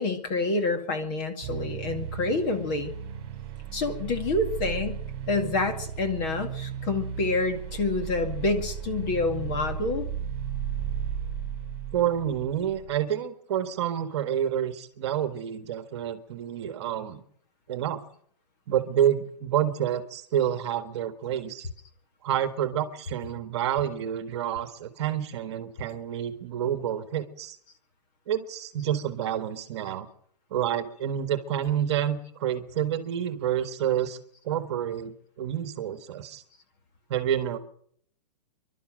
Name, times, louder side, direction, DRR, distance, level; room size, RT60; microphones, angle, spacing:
voice 1, 0.0-2.9 3.7-5.0 5.3-10.1, left 3 dB, 30° left, 6 dB, 2.2 m, -28 dB
sound 1, 1.4-13.0, right 8 dB, 25° right, 4.4 m, -35 dB
voice 2, 11.9-17.2 17.7-18.0 18.7-21.7 22.2-27.6 28.3-30.1 30.5-34.2 34.4-36.4 37.1-37.6, right 10 dB, 40° right, 9 dB, 1.7 m, -28 dB
28.0 x 12.0 x 7.7 m, 0.64 s
hypercardioid pair, 170°, 21 cm